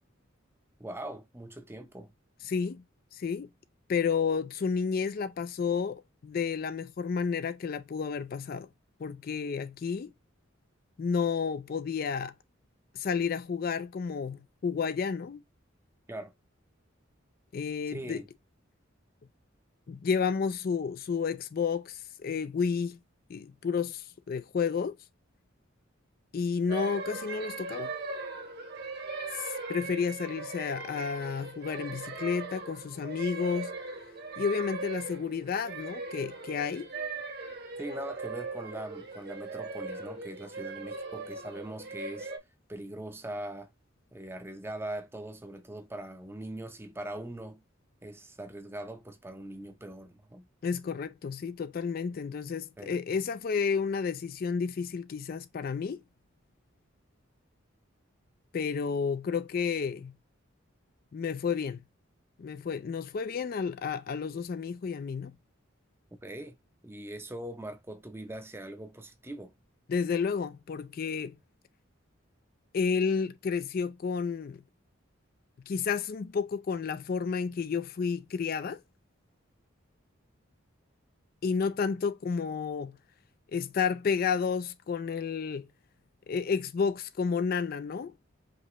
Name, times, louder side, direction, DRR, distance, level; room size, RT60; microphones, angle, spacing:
voice 1, 0.8-2.1 16.1-16.3 17.9-18.3 37.8-42.3 42.7-43.7 44.1-47.6 48.0-50.5 52.8-52.9 66.1-66.6 66.8-69.5, right 1 dB, 10° right, 0.6 m, -41 dB
voice 2, 2.4-2.8 3.1-3.5 3.9-8.7 9.0-10.1 11.0-12.3 12.9-15.4 17.5-18.2 19.9-23.0 23.3-25.0 26.3-27.9 29.3-33.7 34.4-36.9 50.6-56.0 58.5-60.1 61.1-61.8 62.4-65.3 69.9-71.4 72.7-74.6 75.7-78.8 81.4-83.0 83.5-85.7 86.3-88.1, left 6 dB, 45° left, 0.3 m, -31 dB
sound 1, 26.7-42.4, right 3 dB, 50° right, 1.3 m, -39 dB
5.1 x 2.8 x 3.0 m
head